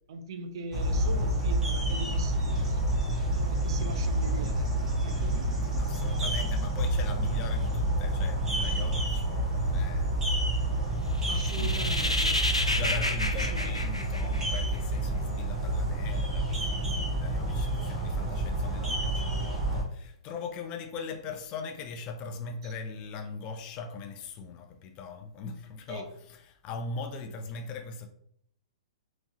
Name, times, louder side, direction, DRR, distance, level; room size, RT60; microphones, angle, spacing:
voice 1, 0.1-2.8 3.3-4.7 5.0-6.1 11.3-12.4 13.4-13.8 22.6-22.7 25.9-26.1, right 3 dB, 50° right, 0.5 m, -41 dB
sound 1, 0.7-19.8, right 1 dB, 15° right, 1.4 m, -29 dB
voice 2, 5.8-10.1 11.6-12.3 12.7-28.1, left 4 dB, 30° left, 0.5 m, -40 dB
sound 2, 11.2-14.8, left 1 dB, 90° left, 0.4 m, -30 dB
3.5 x 3.0 x 2.8 m
figure-of-eight pair, 110°, 3 cm